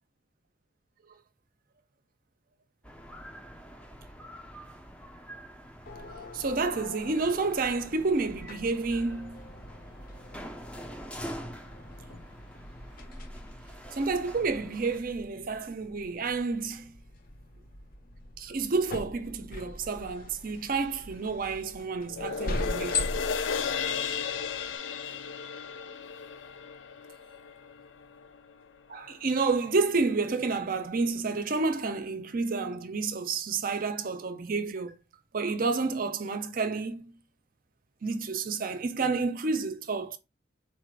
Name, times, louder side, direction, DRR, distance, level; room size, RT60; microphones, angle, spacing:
sound 1, 2.8-15.0, equal, 5° left, 0.5 m, -46 dB
sound 2, 5.9-24.8, left 2 dB, 45° left, 0.7 m, -41 dB
voice 1, 6.3-9.5 13.9-17.0 18.4-23.0 28.9-34.9 35.3-37.1 38.0-40.2, right 4 dB, 45° right, 0.6 m, -30 dB
sound 3, 22.1-28.7 29.1-29.2, left 6 dB, 80° left, 0.5 m, -34 dB
4.4 x 2.5 x 4.6 m
head